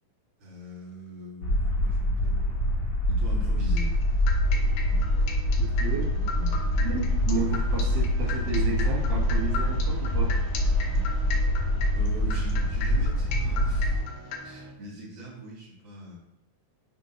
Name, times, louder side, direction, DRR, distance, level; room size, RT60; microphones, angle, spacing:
voice 1, 0.4-2.7 3.1-4.0 6.3-6.8 11.9-14.0 14.4-16.2, equal, 50° right, -4 dB, 1.5 m, -41 dB
sound 1, 1.4-14.0, left 1 dB, 60° left, 2.3 m, -25 dB
sound 2, 3.8-14.4, left 5 dB, 80° left, 2.2 m, -36 dB
sound 3, 4.4-14.7, right 2 dB, 70° right, 2.6 m, -47 dB
voice 2, 5.6-6.4 6.8-10.3, right 4 dB, 85° right, -5 dB, 1.0 m, -32 dB
8.1 x 2.7 x 4.3 m, 0.89 s
omnidirectional pair, 3.9 m